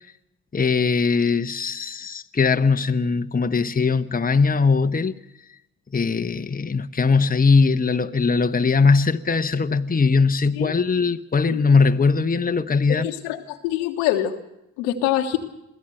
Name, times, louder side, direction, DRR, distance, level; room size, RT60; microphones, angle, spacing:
voice 1, 0.5-5.2 5.9-13.1, left 4 dB, 20° left, 1.0 m, -20 dB
voice 2, 12.9-14.3 14.8-15.4, left 12 dB, 85° left, 1.3 m, -24 dB
22.5 x 15.0 x 7.7 m
hypercardioid pair, 40°, 41 cm